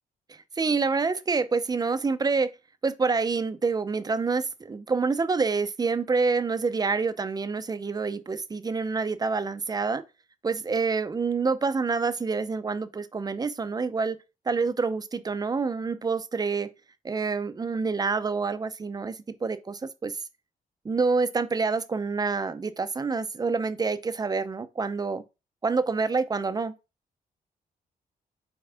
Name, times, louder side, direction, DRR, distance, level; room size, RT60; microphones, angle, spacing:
voice 1, 0.3-2.5 2.8-10.0 10.4-14.2 14.5-16.7 17.0-20.1 20.8-25.2 25.6-26.7, right 4 dB, 25° right, 0.7 m, -27 dB
7.9 x 4.7 x 3.4 m
wide cardioid pair, 135°, 15 cm